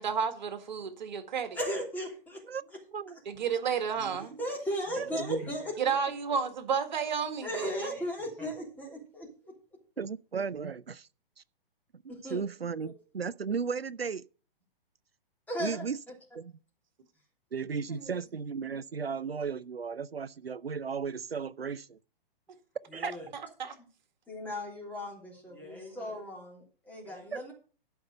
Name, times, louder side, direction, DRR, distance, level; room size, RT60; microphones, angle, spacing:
voice 1, 0.0-1.6 3.3-4.4 5.8-7.9 23.3-23.8, right 6 dB, 50° right, 1.9 m, -31 dB
voice 2, 1.5-2.4 4.4-6.0 7.4-9.5 12.1-12.4 12.8-12.9 15.5-15.8 17.9-18.2 22.9-23.3 24.3-27.5, equal, 5° left, 3.1 m, -37 dB
voice 3, 4.0-4.4 5.0-5.4 10.0-11.1 11.4-11.5 12.3-14.2 15.6-16.0 16.4-16.5 17.5-22.0 22.9-23.1 27.3-27.4, right 6 dB, 90° right, 0.5 m, -35 dB
12.5 x 5.7 x 6.6 m
figure-of-eight pair, 120°, 29 cm